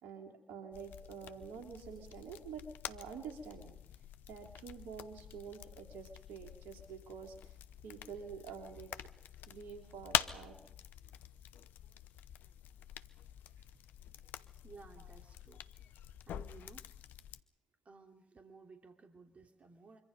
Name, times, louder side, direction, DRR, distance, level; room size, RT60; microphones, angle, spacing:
voice 1, 0.0-3.8 4.3-7.5 7.8-8.9 9.5-10.6 15.0-15.1, right 6 dB, 75° right, 3 dB, 3.6 m, -48 dB
sound 1, 0.7-17.4, left 11 dB, 70° left, 0.8 m, -45 dB
voice 2, 14.6-15.6 16.3-16.9 17.8-20.0, right 4 dB, 45° right, 3 dB, 3.1 m, -56 dB
25.0 x 24.5 x 5.4 m, 0.80 s
hypercardioid pair, 40°, 3 cm